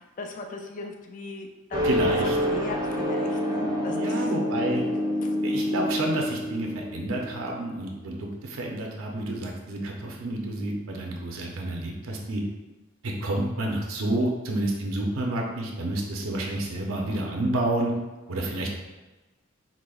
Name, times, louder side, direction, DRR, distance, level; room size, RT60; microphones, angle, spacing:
voice 1, 0.0-1.9 2.2-4.3 5.2-5.3 16.9-17.2, left 2 dB, 40° left, 2 dB, 0.3 m, -38 dB
sound 1, 1.7-8.1, equal, 20° right, 0.5 m, -28 dB
voice 2, 1.8-2.4 3.9-4.8 5.4-12.4 13.0-17.9 18.3-18.8, right 1 dB, 85° right, 0 dB, 0.6 m, -29 dB
4.8 x 2.1 x 2.3 m, 1.1 s
head